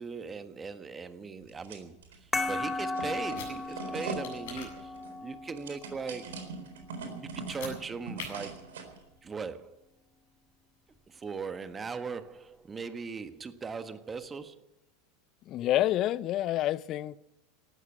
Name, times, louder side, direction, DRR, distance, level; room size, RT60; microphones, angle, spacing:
voice 1, 0.0-6.5 7.0-8.7 9.2-9.8 11.1-14.7, right 5 dB, 20° right, 1.5 m, -39 dB
sound 1, 1.4-2.2 2.5-9.0, right 4 dB, 70° right, 4.0 m, -42 dB
sound 2, 2.3-7.4, left 2 dB, 10° left, 2.2 m, -37 dB
sound 3, 3.1-3.5 4.2-4.7 7.4-7.8 8.2-8.3, left 6 dB, 65° left, 7.8 m, -42 dB
voice 2, 15.5-17.2, left 13 dB, 40° left, 0.6 m, -28 dB
18.0 x 13.0 x 5.8 m
figure-of-eight pair, 85°, 0 cm